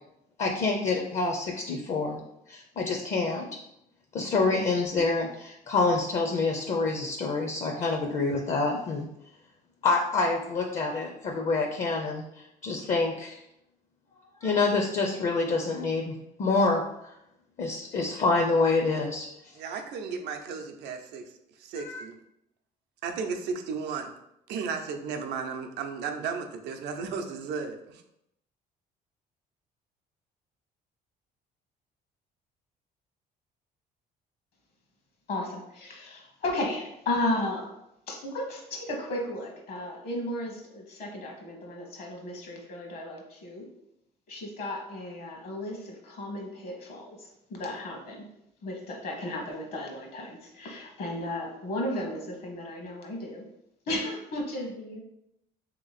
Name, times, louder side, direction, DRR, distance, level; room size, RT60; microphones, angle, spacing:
voice 1, 0.4-2.2 2.5-3.5 4.1-9.1 9.8-13.4 14.4-16.8 17.6-19.3 21.8-22.0, left 3 dB, 45° left, 1 dB, 0.5 m, -27 dB
voice 2, 19.5-21.3 21.6-22.2 23.0-24.1 24.5-28.0, right 5 dB, 80° right, 5 dB, 0.5 m, -34 dB
voice 3, 35.3-37.7 38.1-43.7 44.3-48.3 48.6-53.4 53.9-55.0, left 1 dB, 60° left, 1 dB, 1.0 m, -34 dB
3.2 x 2.9 x 4.0 m, 0.82 s
cardioid pair, 110°, 17 cm